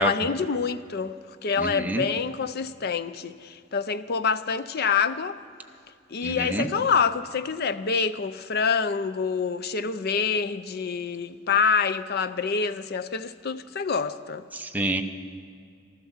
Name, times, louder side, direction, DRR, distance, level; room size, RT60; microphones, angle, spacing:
voice 1, 0.0-5.4 6.1-14.5, left 5 dB, 55° left, 0.6 m, -26 dB
voice 2, 1.6-2.0 6.2-6.7 14.5-15.0, right 1 dB, 10° right, 0.8 m, -27 dB
15.5 x 12.5 x 7.2 m
head